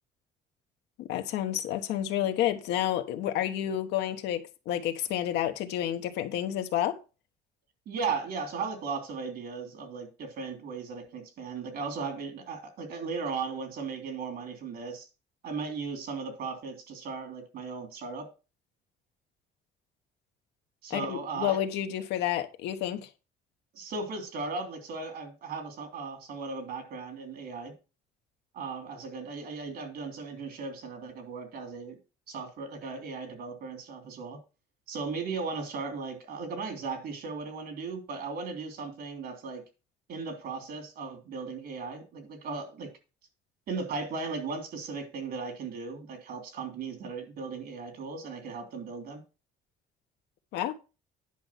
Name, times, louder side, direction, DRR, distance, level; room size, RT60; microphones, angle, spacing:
voice 1, 1.0-7.0 20.9-23.1 50.5-50.7, left 11 dB, 85° left, 1.2 m, -30 dB
voice 2, 7.9-15.1 15.4-18.3 20.8-21.6 23.7-27.7 28.5-32.0 32.3-34.4 34.9-39.6 40.1-42.9 43.7-49.2, right 4 dB, 65° right, 3.2 m, -37 dB
10.0 x 5.5 x 5.8 m
cardioid pair, 110°, 17 cm